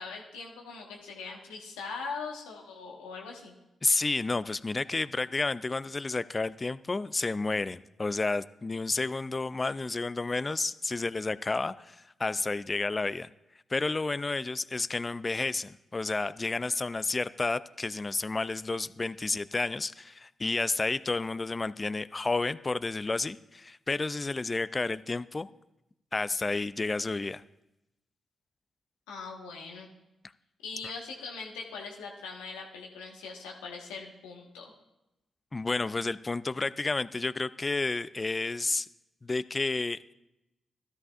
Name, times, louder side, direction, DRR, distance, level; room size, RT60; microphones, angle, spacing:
voice 1, 0.0-3.5 29.1-29.9 30.6-34.7, left 4 dB, 90° left, 0 dB, 1.3 m, -41 dB
voice 2, 3.8-13.3 13.7-25.5 26.1-27.4 35.5-38.9 39.2-40.1, left 3 dB, 35° left, 17 dB, 0.4 m, -31 dB
13.0 x 11.0 x 2.5 m, 0.92 s
hypercardioid pair, 40°, 0 cm